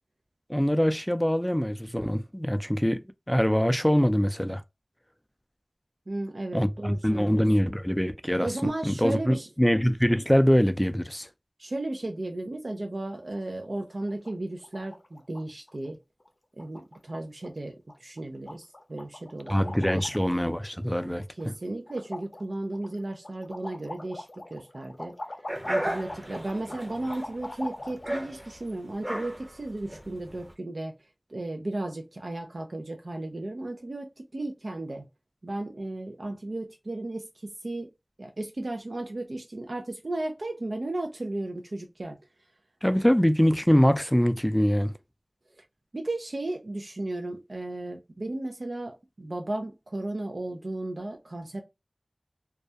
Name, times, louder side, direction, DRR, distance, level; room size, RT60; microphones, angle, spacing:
voice 1, 0.5-3.0 3.3-4.6 6.5-11.3 19.5-21.2 42.8-44.9, equal, 5° left, 0.3 m, -23 dB
voice 2, 6.1-7.7 8.4-9.5 11.6-16.0 16.6-19.7 21.0-25.1 25.6-35.0 35.4-37.9 38.2-42.2 45.6-45.7 45.9-51.6, right 2 dB, 75° right, 0.3 m, -35 dB
sound 1, 13.0-13.4 13.7-13.8 14.0-14.3 14.6-15.4 15.7-15.9 16.2-16.3 16.6-17.1 17.4-17.6 17.9-18.2 18.5-20.4 20.8-21.6 21.9-28.2, left 1 dB, 70° left, 0.5 m, -42 dB
sound 2, 25.5-30.5, right 1 dB, 25° right, 0.7 m, -35 dB
2.3 x 2.1 x 2.6 m
wide cardioid pair, 45°, 0 cm